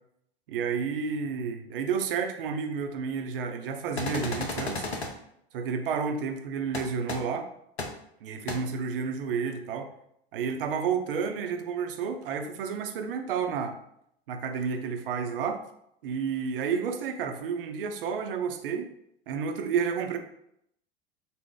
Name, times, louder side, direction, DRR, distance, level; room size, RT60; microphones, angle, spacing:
voice 1, 0.5-4.9 5.5-7.5 8.2-9.9 10.3-13.8 14.3-15.6 16.0-18.9 19.3-20.2, right 6 dB, 60° right, 6 dB, 0.6 m, -31 dB
sound 1, 4.0-5.1 6.7-6.8 7.1-7.2 7.8-7.9 8.5-8.6, left 2 dB, 85° left, 0.6 m, -32 dB
4.1 x 2.1 x 3.6 m, 0.74 s
figure-of-eight pair, 80°, 31 cm